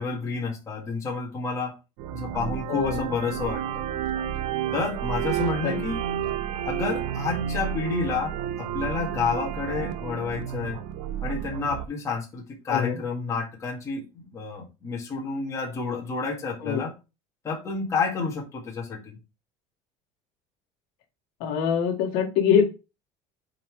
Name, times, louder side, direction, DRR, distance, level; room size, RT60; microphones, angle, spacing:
voice 1, 0.0-1.8 2.1-3.9 4.7-6.0 6.7-10.8 11.2-14.0 14.3-16.9 17.4-19.2, left 4 dB, 20° left, 1.9 m, -30 dB
sound 1, 2.0-11.9, right 10 dB, 60° right, 0.7 m, -31 dB
voice 2, 2.7-3.1 5.6-5.8 12.7-13.0 16.6-16.8 21.4-22.8, left 7 dB, 60° left, 1.8 m, -24 dB
8.4 x 4.0 x 3.2 m
cardioid pair, 175°, 16 cm